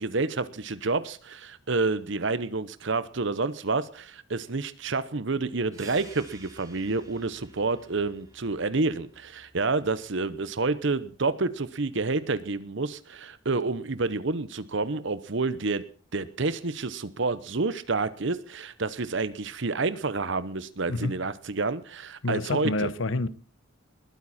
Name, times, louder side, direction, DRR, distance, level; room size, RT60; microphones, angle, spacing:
voice 1, 0.0-15.8 16.1-22.9, right 3 dB, 60° right, 0.9 m, -29 dB
sound 1, 5.7-10.9, right 2 dB, 15° right, 4.0 m, -53 dB
voice 2, 22.2-23.3, left 2 dB, 65° left, 1.0 m, -28 dB
21.0 x 9.4 x 4.2 m
head